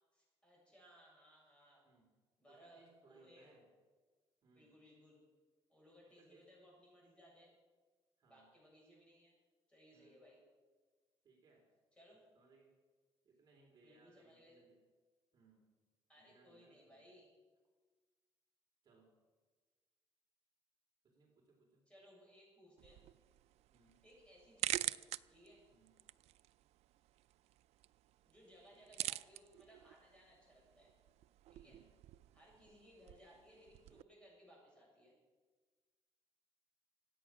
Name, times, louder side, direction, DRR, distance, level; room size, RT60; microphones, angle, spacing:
voice 1, 0.1-1.9 2.4-3.5 4.5-5.2 5.7-7.5 8.3-9.4 9.7-10.4 12.0-12.2 13.8-14.6 16.1-17.3 21.9-23.0 24.0-25.0 25.3-25.6 28.2-30.9 31.5-31.8 32.3-35.1, equal, 10° left, -4 dB, 7.3 m, -64 dB
voice 2, 2.4-3.7 4.4-4.8 6.2-6.5 8.2-8.5 9.9-10.2 11.2-11.7 12.3-12.7 13.2-14.8 15.3-15.7 16.1-17.1 18.8-19.2 21.0-21.8 23.7-24.0 25.7-26.0 28.7-29.0 31.6-31.9 32.5-32.8, right 3 dB, 40° right, -1 dB, 3.6 m, -69 dB
sound 1, 22.8-34.0, right 14 dB, 90° right, 0.4 m, -47 dB
25.0 x 9.2 x 6.2 m, 1.4 s
cardioid pair, 165°, 11 cm